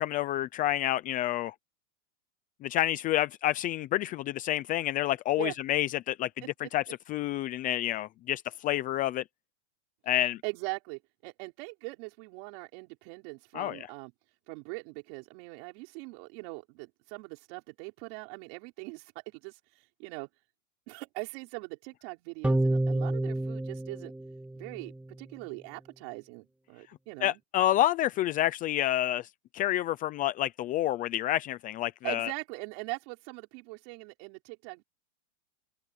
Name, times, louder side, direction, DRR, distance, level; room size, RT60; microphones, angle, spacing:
voice 1, 0.0-1.5 2.6-6.3 6.7-6.8 7.1-9.2 10.1-10.4 13.5-13.9 27.2-29.3 29.5-32.3, left 14 dB, 20° left, 0.6 m, -28 dB
voice 2, 10.4-14.1 14.5-20.3 20.9-24.1 24.5-27.4 32.0-34.8, right 30 dB, 45° right, 5.0 m, -41 dB
sound 1, 22.4-25.0, right 2 dB, 5° right, 1.9 m, -29 dB
open air
supercardioid pair, 150°, 41 cm